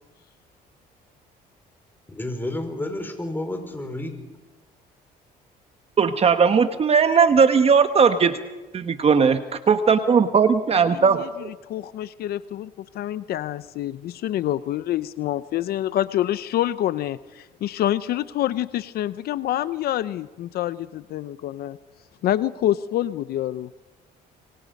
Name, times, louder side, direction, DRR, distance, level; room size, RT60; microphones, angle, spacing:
voice 1, 2.1-4.1, left 1 dB, 10° left, 5 dB, 5.0 m, -30 dB
voice 2, 6.0-8.4 8.7-11.5, right 6 dB, 35° right, 9 dB, 1.2 m, -18 dB
voice 3, 10.9-11.3 11.7-21.8 22.2-23.7, left 12 dB, 65° left, 15 dB, 0.7 m, -27 dB
26.0 x 24.0 x 5.3 m, 1.2 s
cardioid pair, 110°, 17 cm